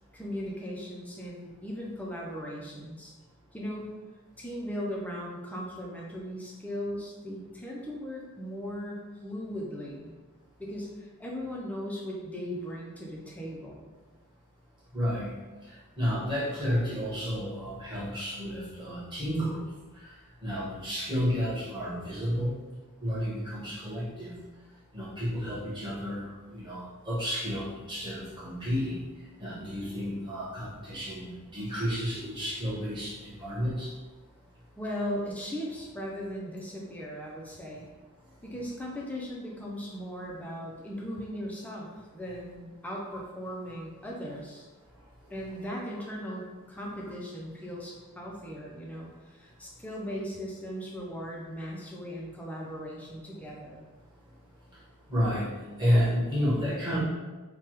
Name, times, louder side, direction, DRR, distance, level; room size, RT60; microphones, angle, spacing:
voice 1, 0.1-3.1 3.5-3.9 4.4-10.2 10.6-13.9 34.8-37.8 38.4-44.7 45.3-53.9, equal, 5° left, -3 dB, 0.4 m, -38 dB
voice 2, 14.9-15.3 15.6-19.6 19.9-20.1 20.4-22.6 23.0-24.4 24.9-29.0 29.4-33.9 38.5-38.6 55.1-57.0, equal, 20° right, -9 dB, 1.2 m, -31 dB
3.3 x 2.2 x 3.0 m, 1.2 s
head